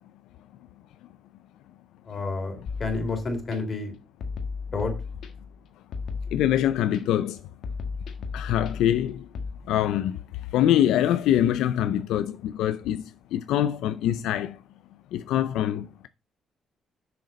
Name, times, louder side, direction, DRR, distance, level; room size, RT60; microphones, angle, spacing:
voice 1, 2.0-4.0 4.7-4.9, left 3 dB, 45° left, 3.2 m, -30 dB
sound 1, 2.7-3.6 4.2-5.6 5.9-7.0 7.6-9.5, left 5 dB, 70° left, 1.5 m, -35 dB
voice 2, 6.3-7.4 8.3-9.3 9.7-10.2 10.5-13.0 13.3-14.6 15.1-16.1, left 11 dB, 90° left, 0.4 m, -24 dB
6.7 x 6.4 x 5.2 m
cardioid pair, 90°, 0 cm